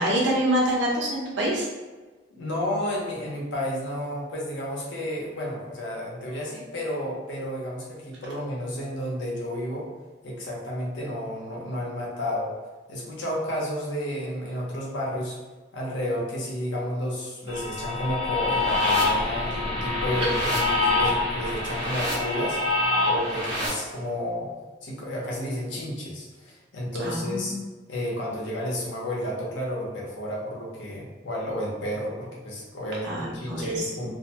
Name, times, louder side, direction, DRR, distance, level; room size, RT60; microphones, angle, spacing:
voice 1, 0.0-1.7 27.0-27.6 33.0-34.1, right 1 dB, 70° right, -4 dB, 0.8 m, -26 dB
voice 2, 2.4-9.9 10.2-12.5 12.9-15.4 15.7-22.6 23.0-24.5 24.8-27.6 27.9-34.1, equal, 80° left, -2 dB, 0.7 m, -31 dB
sound 1, 17.5-23.7, left 2 dB, 30° right, 1.2 m, -25 dB
2.5 x 2.2 x 2.7 m, 1.3 s
head